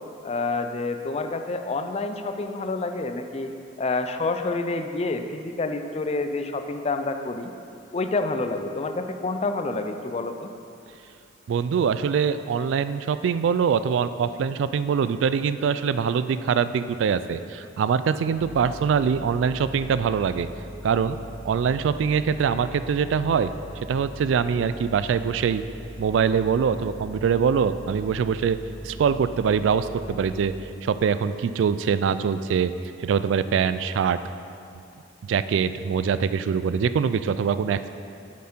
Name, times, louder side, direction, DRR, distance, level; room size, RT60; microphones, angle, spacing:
voice 1, 0.2-3.5 3.8-7.5 7.9-10.5, left 3 dB, 35° left, 7 dB, 0.4 m, -28 dB
voice 2, 11.5-20.5 20.8-21.2 21.5-23.5 23.9-25.6 26.0-28.6 28.8-30.5 30.8-32.7 33.0-34.2 35.2-37.9, right 6 dB, 75° right, 12 dB, 0.3 m, -23 dB
sound 1, 18.3-30.6, equal, 80° left, 2.1 m, -41 dB
7.6 x 7.3 x 4.4 m, 2.5 s
head